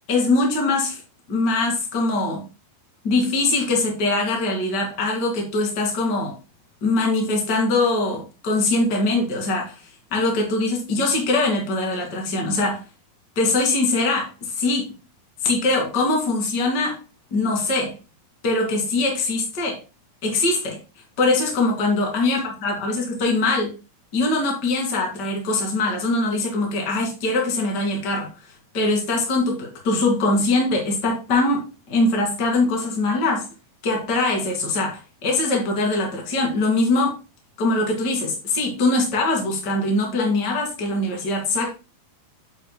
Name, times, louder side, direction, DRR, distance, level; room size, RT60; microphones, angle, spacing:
voice 1, 0.1-1.0 1.3-2.4 3.0-6.4 6.8-9.8 10.1-12.8 13.4-14.9 15.4-17.0 17.3-18.0 18.4-19.8 20.2-20.8 21.2-23.7 24.1-28.3 28.7-33.5 33.8-37.2 37.6-41.7, left 2 dB, 30° left, 2.3 m, -22 dB
8.7 x 7.7 x 2.2 m
omnidirectional pair, 4.3 m